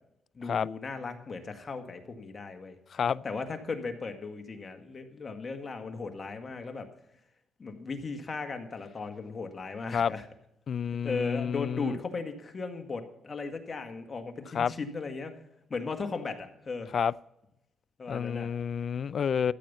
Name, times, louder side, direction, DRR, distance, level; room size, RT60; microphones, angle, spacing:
voice 1, 0.4-2.8 3.2-6.9 7.6-10.2 11.0-15.3 15.7-16.9 18.0-18.5 19.4-19.5, left 4 dB, 35° left, 5 dB, 1.8 m, -37 dB
voice 2, 2.9-3.2 9.9-10.1 10.7-12.0 14.5-14.7 16.9-17.1 18.1-19.5, left 7 dB, 50° left, 20 dB, 0.3 m, -29 dB
13.5 x 8.8 x 5.6 m, 0.84 s
cardioid pair, 90°, 0 cm